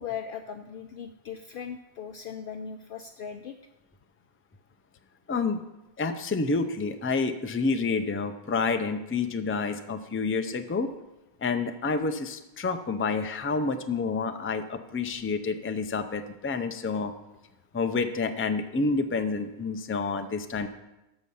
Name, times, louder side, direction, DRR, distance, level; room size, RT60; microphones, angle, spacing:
voice 1, 0.0-3.6, left 7 dB, 60° left, 6 dB, 0.7 m, -38 dB
voice 2, 5.3-5.6 6.0-10.9 11.4-17.1 17.7-20.7, left 4 dB, 20° left, 7 dB, 0.4 m, -29 dB
13.5 x 5.6 x 5.4 m, 0.95 s
omnidirectional pair, 1.1 m